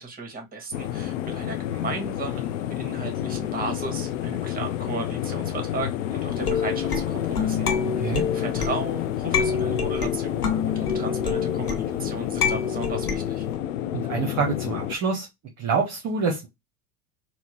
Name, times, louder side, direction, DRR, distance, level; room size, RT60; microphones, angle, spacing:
voice 1, 0.0-7.7 8.3-13.4, right 3 dB, 20° right, 1.5 m, -35 dB
sound 1, 0.7-15.0, left 11 dB, 60° left, 0.6 m, -29 dB
sound 2, 6.3-13.6, left 6 dB, 85° left, 0.9 m, -28 dB
voice 2, 13.9-15.3 15.6-16.5, right 5 dB, 40° right, 1.0 m, -26 dB
4.2 x 2.3 x 3.0 m
figure-of-eight pair, 80°, 43 cm